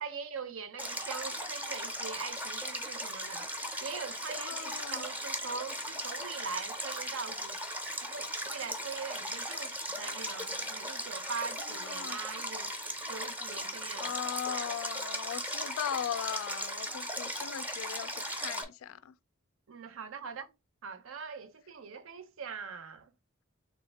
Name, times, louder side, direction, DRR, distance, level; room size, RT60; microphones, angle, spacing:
voice 1, 0.0-3.5 3.8-7.6 8.0-12.7 13.1-14.1 14.5-14.6 19.7-20.5 20.8-23.1, right 5 dB, 70° right, 0.5 m, -42 dB
Stream, 0.8-18.6, equal, 10° right, 0.5 m, -37 dB
voice 2, 4.4-5.1 11.6-12.2 13.1-13.2 14.0-19.2, left 9 dB, 75° left, 0.3 m, -39 dB
3.4 x 2.8 x 3.2 m
head